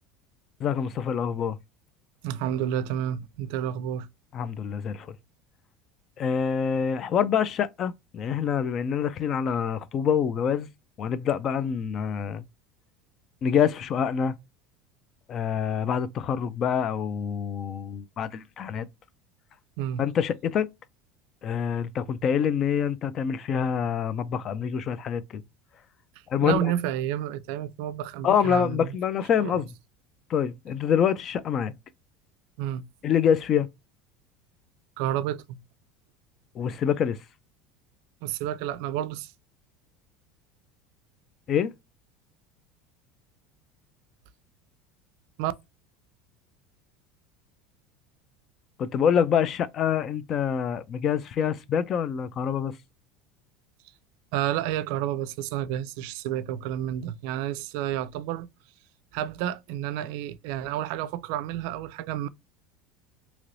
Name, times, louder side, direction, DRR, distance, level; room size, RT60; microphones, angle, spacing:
voice 1, 0.6-1.6 4.3-5.1 6.2-10.7 11.0-12.4 13.4-14.4 15.3-18.9 20.0-20.7 21.4-25.4 26.3-26.6 28.2-29.7 30.3-31.7 33.0-33.7 36.6-37.2 41.5-41.7 48.8-52.8, left 8 dB, 35° left, 0.4 m, -26 dB
voice 2, 2.2-4.1 19.8-20.0 26.4-29.0 29.4-29.6 32.6-32.8 35.0-35.6 38.2-39.3 45.4-45.5 54.3-58.5 59.1-62.3, right 11 dB, 70° right, 0.4 m, -30 dB
3.1 x 2.9 x 2.5 m
supercardioid pair, 135°, 0 cm